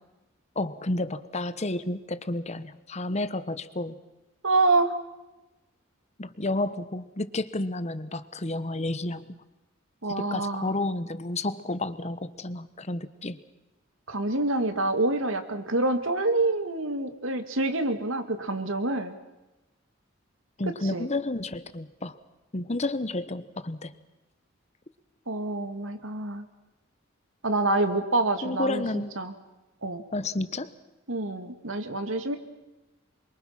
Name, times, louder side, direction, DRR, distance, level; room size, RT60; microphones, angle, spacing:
voice 1, 0.6-4.0 6.2-9.3 10.2-13.4 20.6-22.1 22.5-23.9 28.4-29.2 30.1-30.7, left 2 dB, 35° left, 14 dB, 1.1 m, -31 dB
voice 2, 4.4-4.9 10.0-10.7 14.1-19.2 20.9-21.1 25.3-26.4 27.4-29.3 29.8-30.0 31.1-32.4, right 2 dB, 80° right, 8 dB, 2.4 m, -27 dB
27.0 x 24.0 x 6.0 m, 1.0 s
head